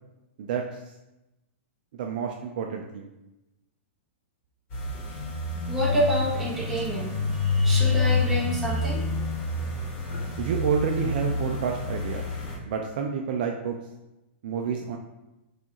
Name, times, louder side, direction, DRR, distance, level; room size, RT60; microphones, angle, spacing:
voice 1, 0.4-0.8 1.9-3.1 10.4-12.2 12.7-13.8 14.4-15.0, right 6 dB, 45° right, 2 dB, 0.4 m, -29 dB
sound 1, 4.7-12.6, left 3 dB, 25° left, 1.1 m, -27 dB
voice 2, 5.7-9.0, equal, 5° right, -8 dB, 1.0 m, -28 dB
6.1 x 2.4 x 2.9 m, 0.95 s
hypercardioid pair, 170°, 7 cm